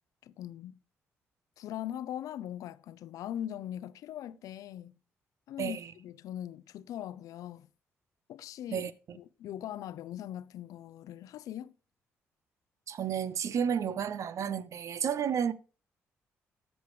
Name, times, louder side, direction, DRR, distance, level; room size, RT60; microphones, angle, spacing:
voice 1, 0.2-0.8 1.6-4.9 5.5-7.7 8.3-8.9 9.1-11.7, left 11 dB, 75° left, 0.5 m, -41 dB
voice 2, 5.6-5.9 8.7-9.2 12.9-15.5, right 8 dB, 60° right, 0.8 m, -32 dB
14.5 x 5.4 x 3.1 m
supercardioid pair, 50°, 6 cm